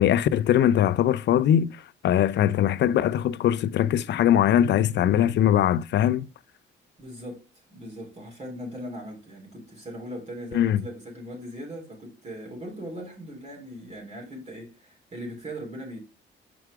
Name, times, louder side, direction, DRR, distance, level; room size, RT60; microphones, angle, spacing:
voice 1, 0.0-1.8 2.0-6.3 10.5-10.8, left 10 dB, 65° left, 0.5 m, -21 dB
voice 2, 7.0-16.0, equal, 35° right, 3.1 m, -39 dB
6.2 x 4.5 x 4.7 m
cardioid pair, 90°, 20 cm